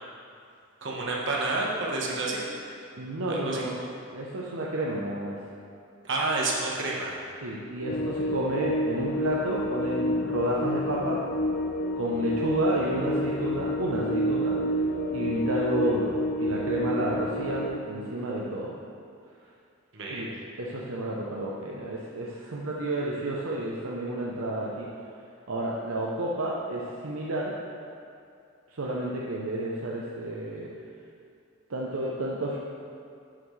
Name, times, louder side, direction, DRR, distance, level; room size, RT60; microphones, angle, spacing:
voice 1, 0.8-2.5 3.3-3.7 6.0-7.2 19.9-20.3, right 2 dB, 55° right, -3 dB, 1.3 m, -29 dB
voice 2, 3.0-3.8 4.1-5.4 7.4-11.2 12.0-14.6 15.1-18.7 20.1-20.3 20.6-24.9 25.5-27.6 28.7-30.7 31.7-32.6, right 1 dB, 75° right, -4 dB, 0.8 m, -30 dB
sound 1, 7.8-17.8, equal, 45° left, 0.3 m, -29 dB
11.0 x 5.9 x 3.3 m, 2.4 s
head